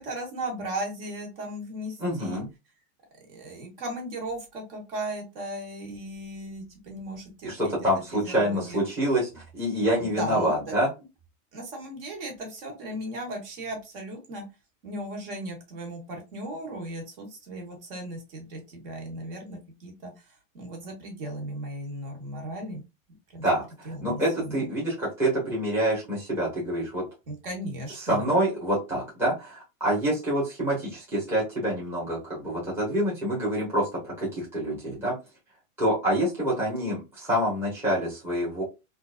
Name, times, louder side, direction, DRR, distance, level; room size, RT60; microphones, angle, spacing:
voice 1, 0.0-2.4 3.3-7.7 8.1-8.8 10.0-10.7 11.5-14.4 14.8-22.8 23.3-23.5 23.8-24.6 27.3-28.3, right 1 dB, 40° right, 2 dB, 1.4 m, -37 dB
voice 2, 2.0-2.5 7.4-10.9 23.4-27.0 28.0-35.1 35.8-38.6, equal, 5° right, -5 dB, 0.9 m, -27 dB
3.8 x 2.5 x 2.4 m, 0.26 s
supercardioid pair, 170°, 42 cm